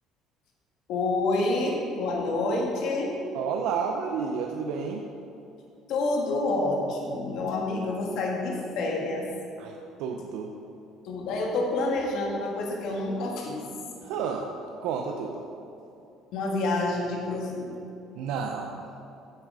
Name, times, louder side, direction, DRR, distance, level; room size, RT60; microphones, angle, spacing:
voice 1, 0.9-3.1 5.9-9.3 11.0-13.6 16.3-17.8, left 2 dB, 60° left, -1 dB, 1.7 m, -28 dB
voice 2, 3.3-5.1 9.6-10.6 14.0-14.5 14.8-15.4 18.1-18.9, right 6 dB, 75° right, 2 dB, 0.7 m, -31 dB
10.0 x 7.5 x 4.9 m, 2.7 s
cardioid pair, 160°, 0 cm